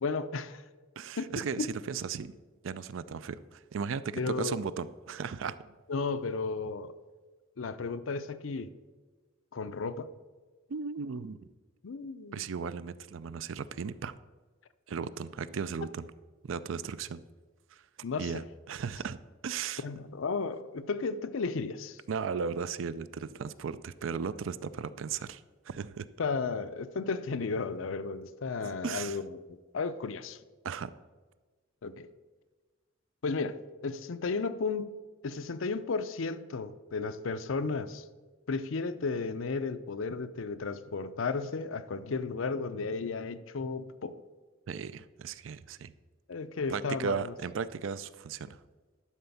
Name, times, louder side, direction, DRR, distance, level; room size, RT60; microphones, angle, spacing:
voice 1, 0.0-0.6 1.2-1.3 1.6-1.7 4.1-4.6 5.9-6.9 7.6-8.7 9.5-10.1 11.8-12.4 18.0-18.4 19.8-22.0 26.2-30.4 31.8-32.1 33.2-34.9 35.2-38.0 38.5-44.2 46.3-47.3, left 4 dB, 75° left, 0.5 m, -34 dB
voice 2, 1.0-2.3 2.6-5.7 10.7-11.4 12.3-14.2 14.9-16.1 16.4-17.2 17.7-17.8 18.2-18.4 18.7-19.2 19.4-19.8 22.1-26.1 28.6-29.2 30.6-30.9 44.7-45.9 46.7-48.6, right 6 dB, 70° right, 0.4 m, -36 dB
11.5 x 4.3 x 7.0 m
head